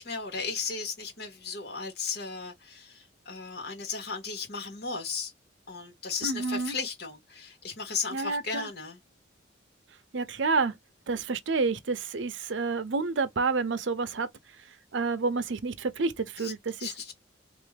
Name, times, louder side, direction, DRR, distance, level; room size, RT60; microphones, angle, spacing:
voice 1, 0.0-5.3 5.7-9.0 16.4-16.5 16.8-17.1, left 5 dB, 60° left, 1.8 m, -35 dB
voice 2, 6.2-6.8 8.1-8.7 10.1-10.7 11.1-14.3 14.9-16.9, right 4 dB, 80° right, 0.7 m, -29 dB
3.3 x 2.5 x 3.3 m
head